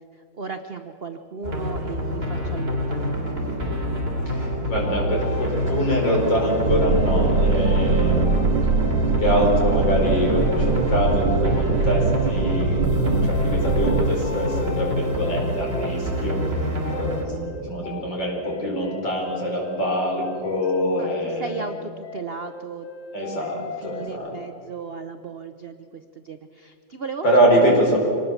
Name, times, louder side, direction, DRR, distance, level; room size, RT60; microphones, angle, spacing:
voice 1, 0.1-3.4 7.5-7.7 21.0-22.9 23.4-27.3 27.5-27.8, right 4 dB, 50° right, 8 dB, 0.7 m, -36 dB
sound 1, 1.4-17.2, equal, 30° right, 3.5 m, -26 dB
voice 2, 4.3-8.4 9.1-21.7 23.1-24.3 27.2-28.0, equal, 60° left, -1 dB, 5.6 m, -24 dB
sound 2, 4.7-24.1, left 6 dB, 80° left, 1.8 m, -39 dB
sound 3, 6.7-14.1, right 4 dB, 80° right, 1.9 m, -22 dB
25.0 x 19.5 x 7.2 m, 2.4 s
omnidirectional pair, 2.2 m